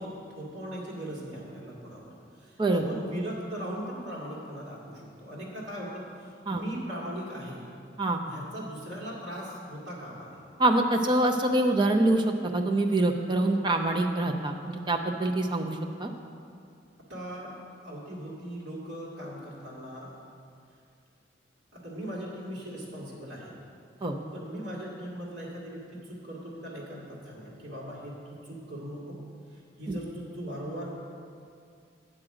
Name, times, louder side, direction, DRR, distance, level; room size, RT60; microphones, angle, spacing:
voice 1, 0.0-7.7 8.2-10.4 17.0-17.6 17.8-20.2 21.7-23.6 24.0-29.2 29.5-30.9, equal, 65° right, -6 dB, 2.1 m, -39 dB
voice 2, 2.6-2.9 6.5-6.6 8.0-8.2 10.6-16.1 24.0-24.1 29.9-30.0, right 2 dB, 25° right, 3 dB, 0.6 m, -25 dB
8.9 x 7.7 x 4.9 m, 2.3 s
head